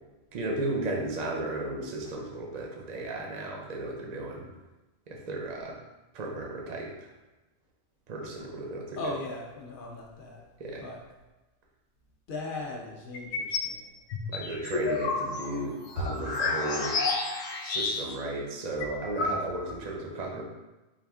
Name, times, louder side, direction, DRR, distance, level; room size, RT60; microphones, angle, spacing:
voice 1, 0.3-4.5 5.1-5.7 6.1-7.1 8.1-9.0 10.6-10.8 14.3-17.0 17.6-20.4, right 2 dB, 45° right, 0 dB, 0.6 m, -34 dB
voice 2, 9.0-10.4 10.8-11.0 12.3-13.9, left 2 dB, 55° left, 0 dB, 0.6 m, -38 dB
sound 1, 13.1-13.7 14.1-18.3 18.5-18.6 18.8-19.8, left 3 dB, 90° left, 1.0 m, -30 dB
4.0 x 2.5 x 3.5 m, 1.1 s
omnidirectional pair, 1.3 m